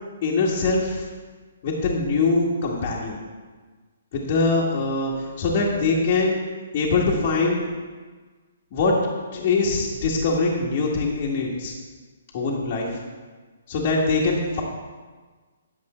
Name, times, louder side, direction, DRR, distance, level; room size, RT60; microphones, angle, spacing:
voice 1, 0.2-1.1 1.6-3.2 4.1-6.4 6.7-7.7 8.7-9.1 9.3-11.7 12.3-13.0 13.7-14.6, left 3 dB, 40° left, -5 dB, 1.8 m, -23 dB
11.0 x 7.2 x 4.4 m, 1.4 s
figure-of-eight pair, 130°, 0 cm